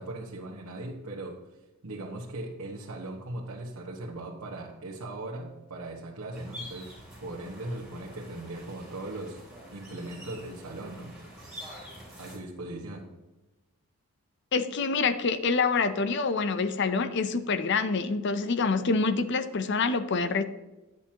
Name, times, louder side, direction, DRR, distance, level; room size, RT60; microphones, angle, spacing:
voice 1, 0.0-1.4 1.8-6.9 7.2-9.4 9.7-11.1 12.2-13.1, right 2 dB, 80° right, -4 dB, 1.3 m, -39 dB
sound 1, 6.3-12.4, equal, 5° right, 2.9 m, -46 dB
voice 2, 14.5-20.4, left 4 dB, 50° left, 12 dB, 0.6 m, -26 dB
10.5 x 8.1 x 2.9 m, 1.1 s
head